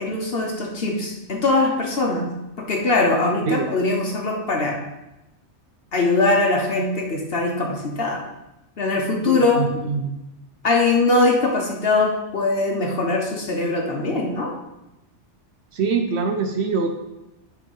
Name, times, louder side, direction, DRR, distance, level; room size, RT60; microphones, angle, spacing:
voice 1, 0.0-2.3 2.6-4.8 5.9-8.2 8.8-9.6 10.6-14.5, left 3 dB, 55° left, 0 dB, 1.2 m, -21 dB
voice 2, 9.2-10.2 15.7-17.0, right 4 dB, 70° right, 5 dB, 0.9 m, -24 dB
9.5 x 3.5 x 5.4 m, 0.95 s
omnidirectional pair, 1.2 m